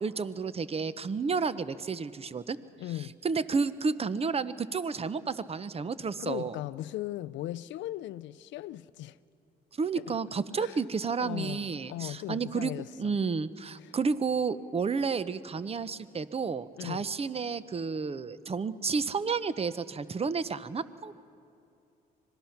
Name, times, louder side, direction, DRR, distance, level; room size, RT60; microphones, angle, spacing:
voice 1, 0.0-2.6 3.2-6.6 9.8-12.7 13.0-21.1, right 5 dB, 30° right, 0.8 m, -31 dB
voice 2, 2.8-3.2 6.2-9.2 9.9-10.2 10.5-10.8 11.2-13.1 13.8-13.9 16.8-17.1, left 14 dB, 75° left, 0.5 m, -38 dB
25.5 x 20.0 x 5.9 m
supercardioid pair, 70°, 19 cm